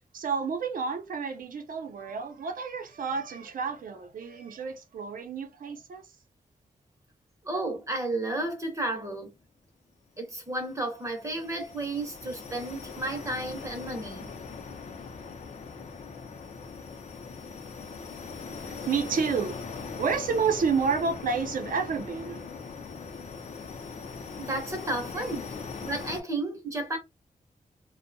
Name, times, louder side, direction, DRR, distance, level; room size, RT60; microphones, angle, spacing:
voice 1, 0.1-6.1 17.9-22.5 25.2-25.3, right 5 dB, 85° right, 0.5 m, -30 dB
voice 2, 7.4-9.3 10.2-14.3 24.4-25.5 25.8-27.0, right 2 dB, 20° right, 0.6 m, -32 dB
sound 1, 10.5-26.2, left 5 dB, 60° left, 0.5 m, -40 dB
2.6 x 2.1 x 2.5 m
wide cardioid pair, 175°, 14 cm